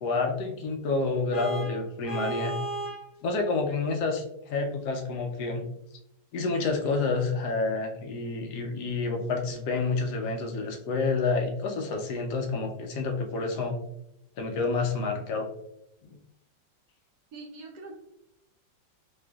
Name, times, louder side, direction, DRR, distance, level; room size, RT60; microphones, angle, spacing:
voice 1, 0.0-2.6 3.2-5.6 6.3-13.8 14.4-15.5 16.1-16.2, left 3 dB, 70° left, 3 dB, 1.0 m, -29 dB
Vehicle horn car horn honking, 1.3-3.1, right 2 dB, 40° left, 0.8 m, -34 dB
voice 2, 17.3-17.9, right 3 dB, 70° right, 0 dB, 1.0 m, -43 dB
4.3 x 2.6 x 2.2 m, 0.82 s
omnidirectional pair, 2.0 m